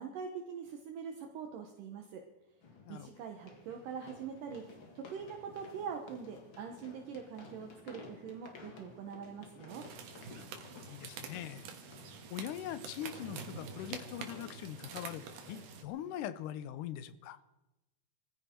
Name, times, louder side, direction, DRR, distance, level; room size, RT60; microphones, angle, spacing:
voice 1, 0.0-2.2 2.9-4.7 5.0-9.8, right 6 dB, 70° right, 3 dB, 2.6 m, -43 dB
sound 1, 0.7-0.8 2.6-16.5, left 3 dB, 40° left, 2.2 m, -55 dB
sound 2, 9.7-15.8, right 6 dB, 90° right, 3.3 m, -47 dB
voice 2, 10.7-11.7 12.3-17.4, left 11 dB, 75° left, 14 dB, 2.1 m, -42 dB
21.0 x 15.0 x 4.5 m, 1.0 s
omnidirectional pair, 4.2 m